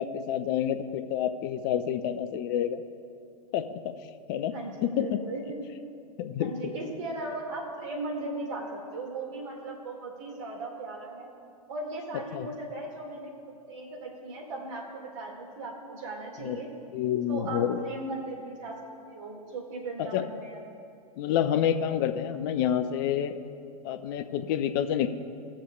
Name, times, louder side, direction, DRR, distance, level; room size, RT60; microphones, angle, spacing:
voice 1, 0.0-2.8 3.5-3.9 4.3-4.5 4.8-5.2 6.2-6.5 12.3-12.5 16.4-16.6 16.9-17.9 20.0-20.2 21.2-23.4 23.8-25.1, left 9 dB, 35° left, 10 dB, 0.5 m, -28 dB
voice 2, 4.5-5.6 6.4-11.3 11.7-16.7 17.3-18.8 19.1-20.6, right 2 dB, 50° right, -1 dB, 2.2 m, -37 dB
21.0 x 7.3 x 2.4 m, 2.4 s
figure-of-eight pair, 100°, 20 cm